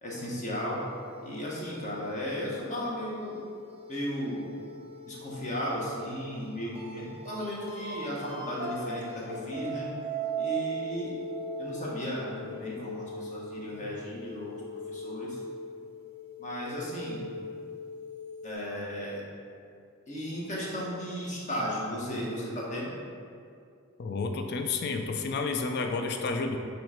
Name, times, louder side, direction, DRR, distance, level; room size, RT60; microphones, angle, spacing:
voice 1, 0.0-0.8 1.2-3.4 3.9-4.5 5.0-9.9 10.4-11.2 11.6-15.4 16.4-17.2 18.4-19.2 20.1-22.9, equal, 35° left, -5 dB, 1.3 m, -35 dB
sound 1, 0.7-18.5, right 2 dB, 30° right, 0.8 m, -40 dB
voice 2, 24.0-26.6, left 4 dB, 55° left, 5 dB, 0.4 m, -30 dB
6.0 x 3.1 x 5.0 m, 2.4 s
head